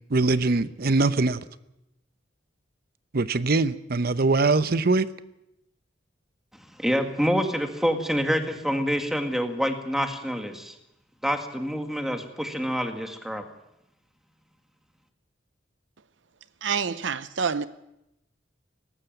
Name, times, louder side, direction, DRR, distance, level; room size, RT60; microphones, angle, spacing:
voice 1, 0.1-1.4 3.1-5.1, right 3 dB, 55° right, 0.8 m, -22 dB
voice 2, 6.5-10.8 11.2-13.4, equal, ahead, 2.0 m, -27 dB
voice 3, 16.6-17.7, right 6 dB, 80° right, 0.7 m, -27 dB
19.0 x 15.0 x 9.2 m
head